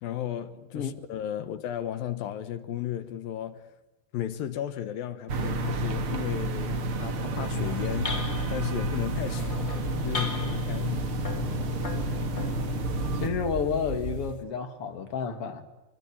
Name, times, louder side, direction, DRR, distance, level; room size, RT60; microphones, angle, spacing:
voice 1, 0.0-3.7 4.1-11.1, left 11 dB, 65° left, 2.5 m, -35 dB
sound 1, 5.3-13.3, right 1 dB, 60° right, 1.5 m, -30 dB
sound 2, 7.5-14.4, left 1 dB, 25° left, 2.4 m, -35 dB
voice 2, 13.2-15.6, left 6 dB, 40° left, 2.4 m, -30 dB
26.0 x 24.5 x 8.7 m
omnidirectional pair, 5.0 m